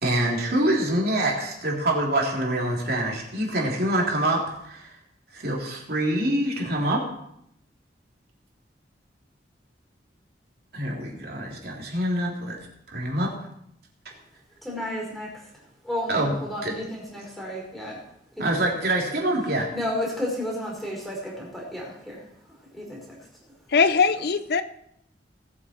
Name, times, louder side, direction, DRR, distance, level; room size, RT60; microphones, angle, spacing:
voice 1, 0.0-5.0 5.3-7.1 10.7-12.6 12.9-13.3 16.1-16.3 16.6-16.7 18.4-19.7, right 1 dB, 60° right, -2 dB, 3.5 m, -25 dB
voice 2, 14.6-15.3 15.8-18.0 18.4-18.6 19.7-22.2 22.7-23.2, left 1 dB, ahead, -4 dB, 4.7 m, -32 dB
voice 3, 23.7-24.6, left 5 dB, 60° left, 12 dB, 0.5 m, -20 dB
19.0 x 8.5 x 4.6 m, 0.75 s
head